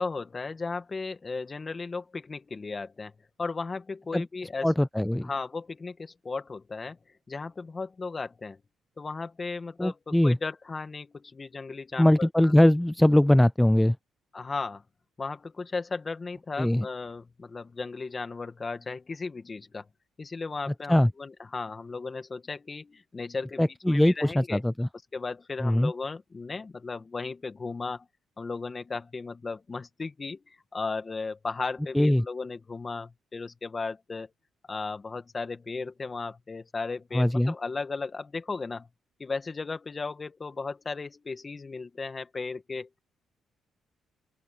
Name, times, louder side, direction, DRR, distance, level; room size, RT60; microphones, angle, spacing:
voice 1, 0.0-3.1 3.4-4.7 5.2-7.0 7.3-8.6 9.0-12.5 14.3-14.8 15.2-19.9 20.2-24.6 25.1-28.1 28.4-34.3 34.7-38.9 39.2-42.9, left 4 dB, 30° left, 2.0 m, -35 dB
voice 2, 4.6-5.3 9.8-10.4 12.0-14.0 16.6-16.9 20.9-21.1 23.6-24.9 25.6-25.9 31.9-32.2 37.1-37.5, left 1 dB, 5° left, 0.4 m, -21 dB
open air
cardioid pair, 90°, 0 cm